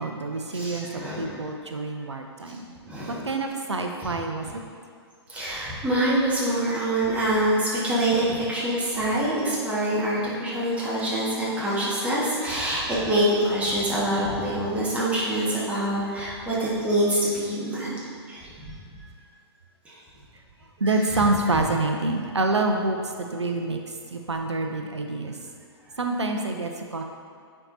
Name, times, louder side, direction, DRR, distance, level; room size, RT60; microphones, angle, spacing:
voice 1, 0.0-2.6 3.1-4.5 8.3-8.4 20.8-23.8 24.1-25.3 26.0-27.0, right 2 dB, 90° right, 3 dB, 0.6 m, -27 dB
voice 2, 0.5-1.4 2.8-3.2 4.0-4.1 4.4-4.5 5.3-17.9 18.3-19.0 19.8-20.0 20.8-21.2 21.4-21.6, right 1 dB, 10° right, -8 dB, 1.6 m, -25 dB
8.7 x 4.6 x 2.7 m, 2.2 s
figure-of-eight pair, 120°, 14 cm